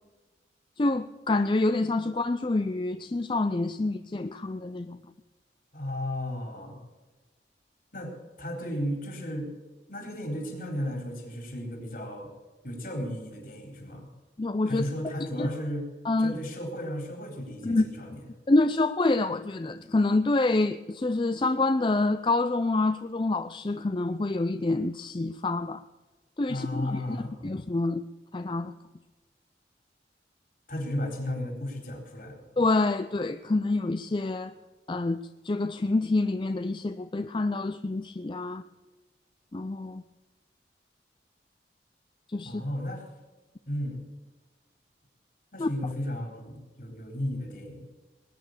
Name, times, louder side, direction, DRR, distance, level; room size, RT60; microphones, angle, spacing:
voice 1, 0.8-5.0 14.4-14.8 15.4-15.5 16.1-16.3 17.6-17.8 18.5-25.8 26.4-27.0 27.4-28.0 28.3-28.7 32.6-34.5 34.9-38.6 39.5-40.0 42.3-42.6 45.6-45.7, left 2 dB, 30° left, 0.4 m, -27 dB
voice 2, 5.7-6.8 7.9-8.1 8.4-9.5 9.9-12.3 12.6-14.1 14.7-15.9 16.2-18.2 26.5-27.3 30.7-32.4 42.4-43.1 43.7-44.0 45.5-47.8, left 1 dB, 50° left, 3.9 m, -34 dB
20.0 x 9.7 x 6.6 m
head